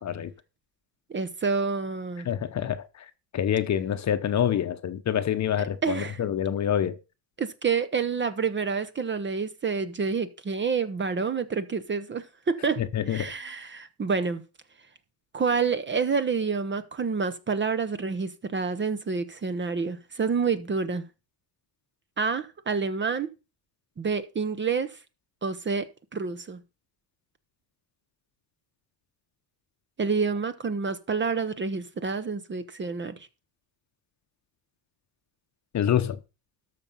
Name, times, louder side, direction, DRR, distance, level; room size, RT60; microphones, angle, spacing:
voice 1, 0.0-0.3 2.2-3.0 3.3-7.0 12.8-13.3 35.7-36.2, left 9 dB, 35° left, 0.9 m, -26 dB
voice 2, 1.1-2.3 5.6-6.2 7.4-12.8 13.1-14.4 15.3-21.0 22.2-23.3 24.0-25.0 25.4-26.6 30.0-33.3, right 5 dB, 25° right, 0.9 m, -28 dB
13.0 x 6.0 x 5.4 m
cardioid pair, 115°, 46 cm